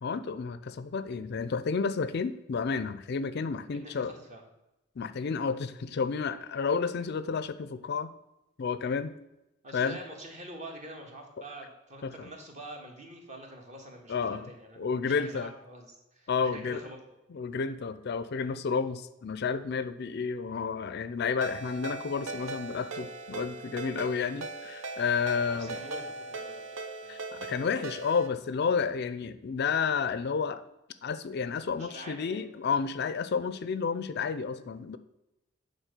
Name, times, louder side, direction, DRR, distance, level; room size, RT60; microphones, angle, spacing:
voice 1, 0.0-4.1 5.0-8.1 8.6-9.1 9.7-10.0 12.0-12.3 14.1-14.5 14.8-15.5 16.3-16.8 17.3-25.8 27.1-30.6 31.0-35.0, left 5 dB, 55° left, 13 dB, 0.4 m, -31 dB
voice 2, 3.7-4.4 9.6-17.0 25.5-26.8 27.0-27.2 31.8-32.5, right 1 dB, 35° right, 1 dB, 1.6 m, -46 dB
Ringtone, 21.4-28.3, right 3 dB, 80° right, 0.9 m, -40 dB
9.1 x 4.0 x 6.6 m, 0.93 s
head